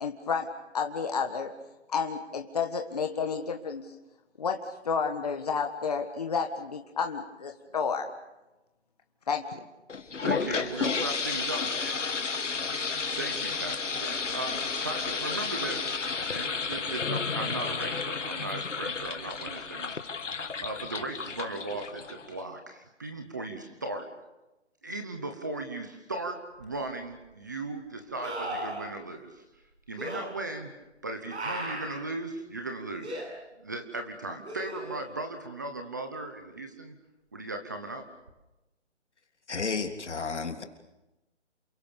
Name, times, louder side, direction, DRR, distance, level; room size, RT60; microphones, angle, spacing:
voice 1, 0.0-1.5 1.9-3.8 4.4-4.6 4.8-8.1 9.3-9.7 10.5-10.6, left 5 dB, 35° left, 5 dB, 1.6 m, -31 dB
sound 1, 9.9-22.4, left 5 dB, 90° left, 2.2 m, -32 dB
voice 2, 10.2-12.0 13.2-15.9 16.3-20.0 20.6-24.1 24.8-29.4 29.9-30.7 31.0-33.2 33.6-36.9 37.3-38.1, right 2 dB, 15° right, 6 dB, 1.0 m, -37 dB
sound 2, 26.6-26.7 28.2-28.9 30.0-30.2 31.3-32.0 33.0-33.3 34.4-35.1 38.3-38.4, right 1 dB, 65° right, 7.5 m, -36 dB
voice 3, 39.5-40.6, left 4 dB, 70° left, 5 dB, 3.4 m, -32 dB
28.5 x 23.5 x 7.0 m, 1.0 s
hypercardioid pair, 175°, 36 cm